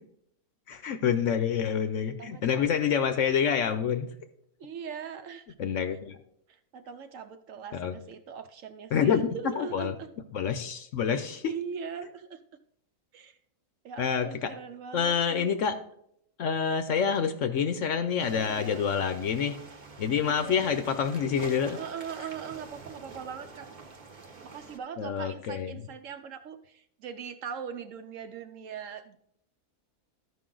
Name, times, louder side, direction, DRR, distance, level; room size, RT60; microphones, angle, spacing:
voice 1, 0.7-4.1 5.6-6.2 7.7-7.9 8.9-9.9 10.3-11.5 14.0-14.5 14.9-15.8 16.4-19.6 20.0-21.8 25.0-25.8, left 7 dB, 60° left, 9 dB, 0.9 m, -27 dB
voice 2, 2.2-2.6 4.6-5.4 6.5-10.1 11.2-12.4 13.1-13.4 13.8-15.5 18.3-18.9 20.2-20.8 21.7-23.7 24.4-29.2, right 7 dB, 65° right, 9 dB, 0.9 m, -41 dB
sound 1, 18.2-24.8, right 3 dB, 35° right, 0.9 m, -47 dB
13.0 x 5.5 x 3.8 m, 0.73 s
omnidirectional pair, 1.6 m